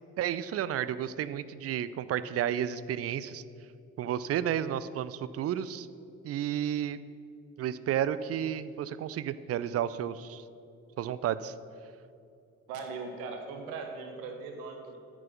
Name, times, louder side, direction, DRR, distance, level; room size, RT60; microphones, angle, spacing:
voice 1, 0.2-3.4 4.0-5.9 6.2-7.0 7.6-10.4 11.0-11.5, right 10 dB, 35° right, 15 dB, 0.4 m, -32 dB
voice 2, 12.7-15.0, right 4 dB, 70° right, 4 dB, 1.1 m, -39 dB
9.0 x 6.0 x 5.9 m, 2.6 s
figure-of-eight pair, 45°, 43 cm